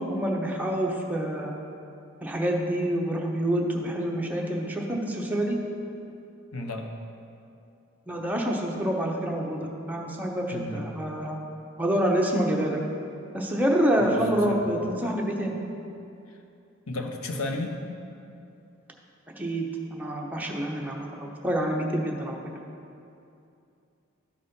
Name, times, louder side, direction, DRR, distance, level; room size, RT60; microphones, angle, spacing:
voice 1, 0.0-1.5 2.2-5.6 8.1-11.4 11.8-12.8 13.3-15.6 19.4-22.4, right 1 dB, 10° right, -1 dB, 0.8 m, -27 dB
voice 2, 6.5-6.9 10.5-10.9 14.0-14.2 14.5-14.6 16.9-17.8, left 2 dB, 80° left, 3 dB, 0.8 m, -33 dB
12.5 x 4.2 x 5.2 m, 2.6 s
head